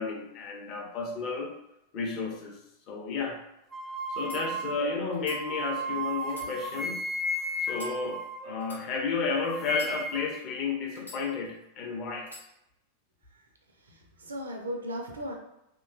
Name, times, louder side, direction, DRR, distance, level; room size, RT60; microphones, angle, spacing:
voice 1, 0.0-1.5 1.9-2.6 2.9-3.4 4.1-7.0 7.6-12.3, left 4 dB, 40° left, 1 dB, 0.6 m, -32 dB
sound 1, 3.7-9.0 9.3-10.4, equal, 10° right, 0.4 m, -34 dB
sound 2, 4.2-4.4 5.1-5.4 6.2-7.1 7.7-8.0 8.6-8.8 9.7-10.4 11.0-11.6 12.2-12.5, left 2 dB, 85° left, 0.9 m, -47 dB
voice 2, 13.9-15.3, equal, 70° right, 2 dB, 0.5 m, -36 dB
2.8 x 2.2 x 2.5 m, 0.85 s
figure-of-eight pair, 90°, 0 cm